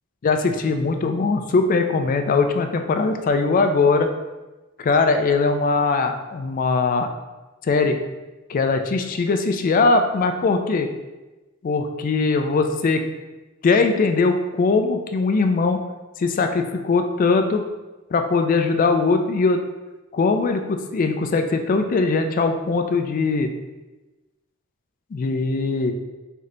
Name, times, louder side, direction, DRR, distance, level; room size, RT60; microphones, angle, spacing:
voice 1, 0.2-4.1 4.8-7.1 7.6-8.0 8.5-10.9 11.6-13.0 13.6-15.8 16.2-17.6 18.1-19.6 20.1-23.5 25.1-25.9, left 4 dB, 40° left, 6 dB, 0.3 m, -20 dB
3.3 x 2.7 x 3.7 m, 1.1 s
head